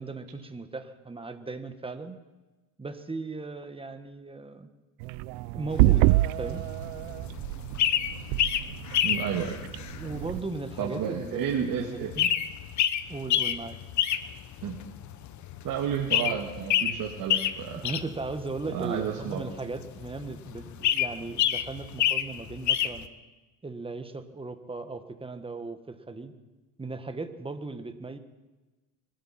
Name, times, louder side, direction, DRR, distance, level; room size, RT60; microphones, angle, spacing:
voice 1, 0.0-2.2 2.8-4.7 5.5-6.1 6.4-6.6 9.9-12.3 13.1-13.8 17.7-23.1 23.6-26.3 26.8-28.2, right 3 dB, 10° right, 8 dB, 1.5 m, -37 dB
sound 1, 5.0-10.4, right 19 dB, 60° right, 0.6 m, -27 dB
sound 2, 5.7-23.1, left 10 dB, 40° left, 1.0 m, -30 dB
voice 2, 9.0-9.6 10.8-12.3 14.6-14.8 15.6-17.8 18.7-19.5, right 8 dB, 45° right, 0 dB, 2.0 m, -31 dB
25.0 x 13.0 x 4.4 m, 1.2 s
hypercardioid pair, 90°, 47 cm